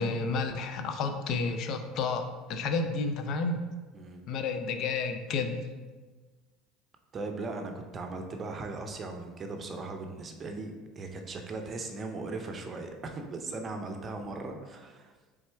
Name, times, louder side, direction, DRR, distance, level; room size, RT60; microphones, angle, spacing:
voice 1, 0.0-3.6 4.3-5.6, left 4 dB, 55° left, 7 dB, 0.5 m, -31 dB
voice 2, 7.1-15.1, right 3 dB, 35° right, 4 dB, 0.6 m, -38 dB
4.2 x 3.4 x 3.3 m, 1.3 s
supercardioid pair, 95°, 0 cm